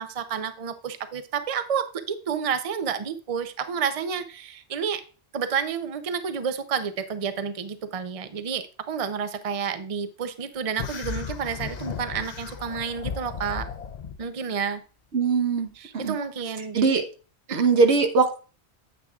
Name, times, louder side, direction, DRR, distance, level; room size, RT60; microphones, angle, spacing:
voice 1, 0.0-5.0 5.3-13.7 14.2-14.8 15.8-17.0 17.5-17.6, right 7 dB, 40° right, 10 dB, 0.7 m, -30 dB
sound 1, 10.8-14.2, left 6 dB, 45° left, 0.6 m, -35 dB
voice 2, 15.1-16.2 16.7-17.0 17.5-18.4, right 4 dB, 90° right, 6 dB, 1.4 m, -21 dB
9.4 x 8.5 x 2.4 m, 0.35 s
omnidirectional pair, 1.1 m